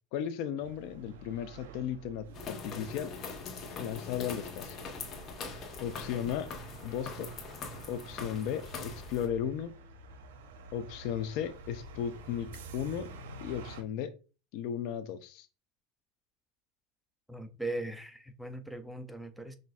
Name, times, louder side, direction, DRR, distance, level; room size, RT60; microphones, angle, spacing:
voice 1, 0.1-3.1 3.8-4.8 5.8-6.5 6.8-7.3 7.9-9.7 10.7-13.1 13.4-14.1 14.5-15.5, left 9 dB, 60° left, 0.4 m, -35 dB
sound 1, 0.6-13.8, right 3 dB, 85° right, 0.6 m, -50 dB
sound 2, 2.3-9.3, left 4 dB, 40° left, 0.9 m, -42 dB
voice 2, 17.3-19.5, right 2 dB, ahead, 0.4 m, -39 dB
5.8 x 2.5 x 2.3 m
supercardioid pair, 120°, 0 cm